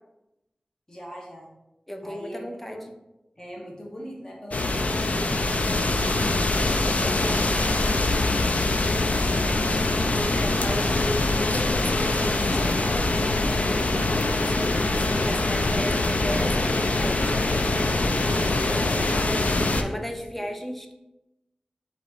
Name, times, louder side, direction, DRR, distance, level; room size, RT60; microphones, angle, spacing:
voice 1, 0.9-1.5 2.0-2.8 3.4-6.3 6.9-9.8 19.7-20.5, equal, 25° left, -3 dB, 1.4 m, -41 dB
voice 2, 1.9-2.8 10.2-20.9, equal, 5° left, 4 dB, 0.6 m, -35 dB
sound 1, 4.5-19.8, left 2 dB, 65° left, 0.4 m, -23 dB
4.0 x 2.8 x 4.8 m, 0.92 s
wide cardioid pair, 55°, 3 cm